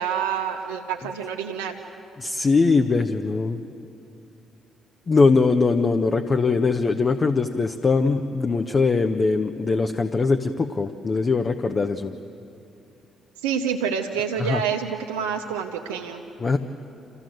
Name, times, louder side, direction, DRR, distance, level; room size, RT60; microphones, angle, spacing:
voice 1, 0.0-1.8 13.4-16.2, right 7 dB, 85° right, 1 dB, 0.8 m, -27 dB
voice 2, 2.2-3.6 5.1-12.1 14.4-14.6 16.4-16.6, left 4 dB, 40° left, 6 dB, 0.9 m, -21 dB
27.5 x 15.5 x 7.8 m, 2.7 s
hypercardioid pair, 50°, 0 cm